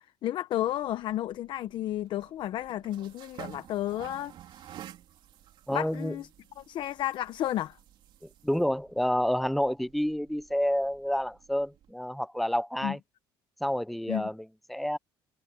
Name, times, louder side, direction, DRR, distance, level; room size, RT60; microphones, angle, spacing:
voice 1, 0.2-4.7 5.7-6.3 6.6-7.8 12.8-13.0 14.1-14.3, left 13 dB, 50° left, 0.8 m, -32 dB
sound 1, 0.7-11.9, right 11 dB, 50° right, 3.2 m, -52 dB
voice 2, 5.7-6.2 8.2-13.0 13.6-15.0, equal, ahead, 0.4 m, -29 dB
cardioid pair, 155°, 10 cm